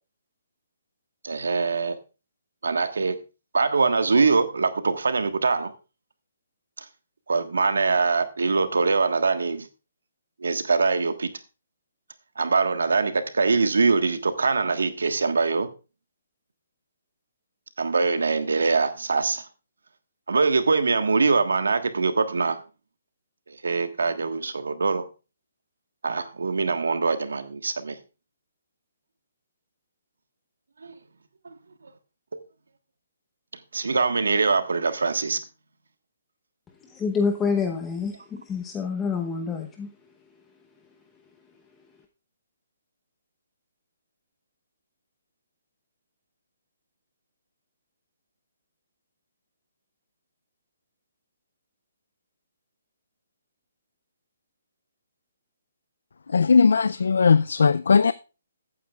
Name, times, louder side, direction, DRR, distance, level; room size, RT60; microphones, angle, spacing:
voice 1, 1.2-2.0 2.6-3.2 3.5-5.7 7.3-9.7 10.4-11.3 12.4-15.7 17.8-19.5 20.3-22.6 23.5-25.1 26.0-28.0 30.8-30.9 31.4-31.5 33.7-35.4, right 4 dB, 85° right, 1.4 m, -23 dB
voice 2, 36.8-40.0, left 5 dB, 15° left, 0.9 m, -27 dB
voice 3, 56.3-58.1, left 5 dB, 75° left, 0.4 m, -18 dB
14.5 x 8.8 x 2.4 m
hypercardioid pair, 150°, 0 cm